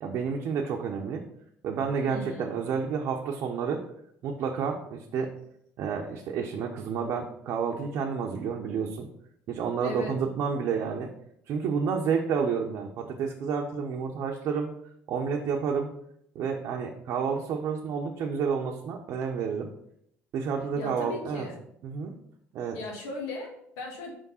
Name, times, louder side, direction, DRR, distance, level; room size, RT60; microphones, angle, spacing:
voice 1, 0.0-1.2 1.6-3.8 4.2-5.3 5.8-9.1 9.5-11.1 11.5-14.7 15.1-15.9 16.3-19.7 20.3-21.5 21.8-22.1 22.5-22.8, right 6 dB, 65° right, 0 dB, 0.7 m, -30 dB
voice 2, 2.1-2.5 9.8-10.1 20.8-21.6 22.7-24.1, left 2 dB, 85° left, 0 dB, 1.6 m, -37 dB
5.1 x 3.6 x 5.5 m, 0.73 s
supercardioid pair, 95°, 5 cm